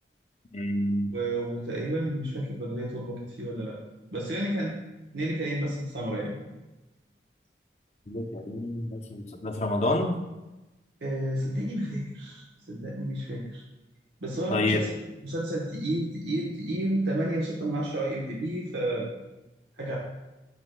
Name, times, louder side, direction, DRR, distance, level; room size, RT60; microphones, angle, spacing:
voice 1, 0.5-1.1 8.1-10.1 14.5-14.9, left 1 dB, 40° left, 3 dB, 0.7 m, -28 dB
voice 2, 1.1-3.8 4.1-4.7 5.1-6.3 11.0-13.6 14.2-15.0 15.2-19.1 19.8-20.0, right 1 dB, 85° right, -3 dB, 1.0 m, -31 dB
9.5 x 6.3 x 2.2 m, 1.0 s
head